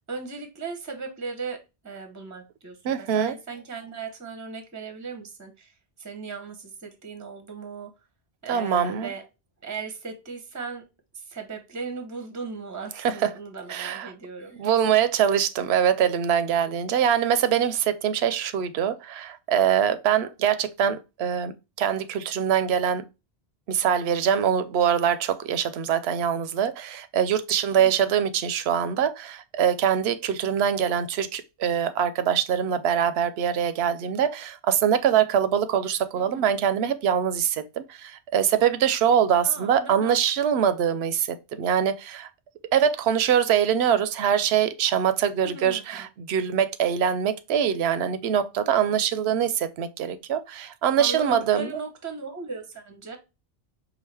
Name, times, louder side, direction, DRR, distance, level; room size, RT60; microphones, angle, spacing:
voice 1, 0.1-5.7 6.0-7.9 8.4-9.3 9.6-10.8 11.3-14.6 27.7-27.9 36.2-36.4 39.4-40.1 45.4-46.1 51.0-53.2, right 4 dB, 20° right, 0.7 m, -37 dB
voice 2, 2.8-3.4 8.5-9.1 13.0-13.3 13.7-14.1 14.6-21.5 21.8-23.0 23.7-42.3 42.7-51.8, right 8 dB, 85° right, 0.8 m, -23 dB
4.8 x 2.4 x 3.3 m
omnidirectional pair, 1.0 m